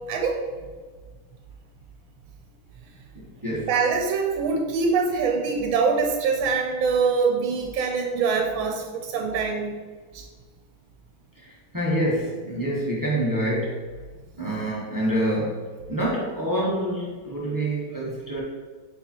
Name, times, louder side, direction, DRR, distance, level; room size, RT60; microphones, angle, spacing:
voice 1, 0.1-0.5 3.7-9.8 10.1-10.2, right 5 dB, 80° right, 3 dB, 1.4 m, -24 dB
voice 2, 3.1-3.7 11.4-13.9 14.4-15.6 15.9-18.4, right 1 dB, 20° right, -6 dB, 0.5 m, -27 dB
6.6 x 4.8 x 2.9 m, 1.4 s
omnidirectional pair, 2.3 m